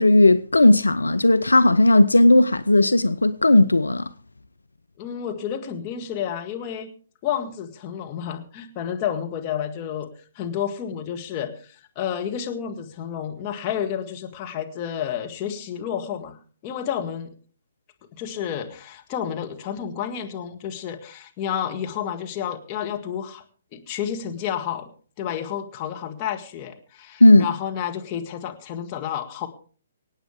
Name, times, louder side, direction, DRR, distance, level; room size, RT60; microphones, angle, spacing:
voice 1, 0.0-4.1 27.2-27.5, left 2 dB, 80° left, 0.5 m, -15 dB
voice 2, 5.0-6.9 7.2-10.1 10.3-17.3 18.1-23.4 23.7-24.9 25.2-29.5, left 9 dB, 30° left, 1.9 m, -30 dB
25.5 x 8.9 x 3.5 m
figure-of-eight pair, 130°, 0 cm